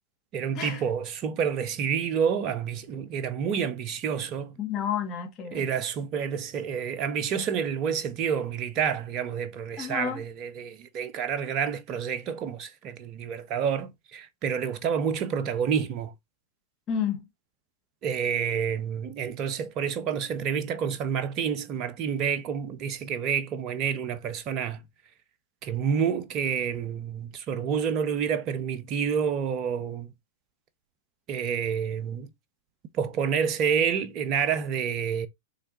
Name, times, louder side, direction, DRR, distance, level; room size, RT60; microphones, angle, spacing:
voice 1, 0.3-4.6 5.5-16.1 18.0-24.8 25.6-30.1 31.3-32.3 32.9-35.3, right 7 dB, 35° right, 0.7 m, -29 dB
voice 2, 4.6-5.7 9.8-10.2 16.9-17.2, left 8 dB, 30° left, 1.8 m, -30 dB
3.9 x 3.3 x 4.1 m
figure-of-eight pair, 95°, 0 cm